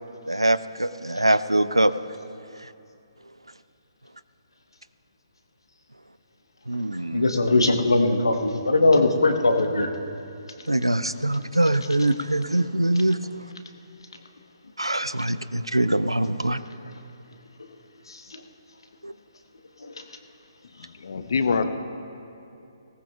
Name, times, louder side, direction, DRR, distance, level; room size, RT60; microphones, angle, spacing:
voice 1, 0.3-1.9 6.7-7.3 10.7-13.2 14.8-16.6 19.0-19.1, right 1 dB, 85° right, 15 dB, 0.5 m, -23 dB
voice 2, 7.1-9.9 16.5-16.6 18.1-18.2, left 2 dB, 70° left, 5 dB, 1.2 m, -20 dB
voice 3, 20.8-21.6, left 5 dB, 50° left, 9 dB, 0.9 m, -25 dB
20.0 x 18.0 x 2.4 m, 2.7 s
figure-of-eight pair, 135°, 3 cm